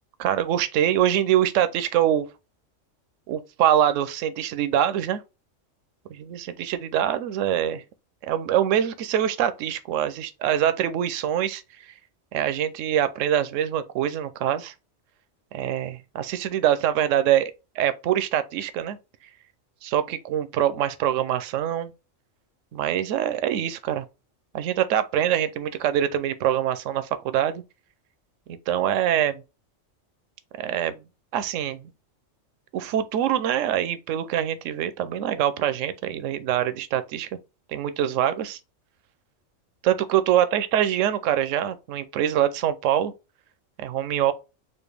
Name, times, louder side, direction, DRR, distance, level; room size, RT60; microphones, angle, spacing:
voice 1, 0.2-2.3 3.3-5.2 6.1-7.8 8.2-11.6 12.3-14.7 15.5-19.0 19.8-21.9 22.7-24.0 24.5-27.6 28.5-29.4 30.6-31.0 31.3-31.9 32.7-37.3 37.7-38.6 39.8-43.1 43.8-44.3, right 10 dB, 80° right, 0.9 m, -24 dB
4.3 x 2.5 x 3.2 m
omnidirectional pair, 1.3 m